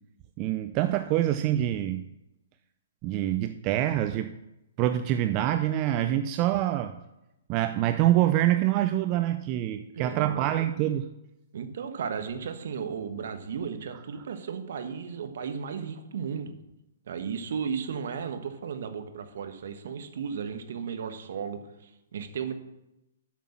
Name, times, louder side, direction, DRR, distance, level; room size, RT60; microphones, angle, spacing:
voice 1, 0.4-2.0 3.0-4.3 4.8-6.9 7.5-11.1, right 13 dB, 35° right, 9 dB, 0.5 m, -25 dB
voice 2, 9.9-10.4 11.5-16.5 17.1-22.5, right 6 dB, 65° right, 8 dB, 1.4 m, -35 dB
8.5 x 6.1 x 7.2 m, 0.89 s
hypercardioid pair, 130°, 0 cm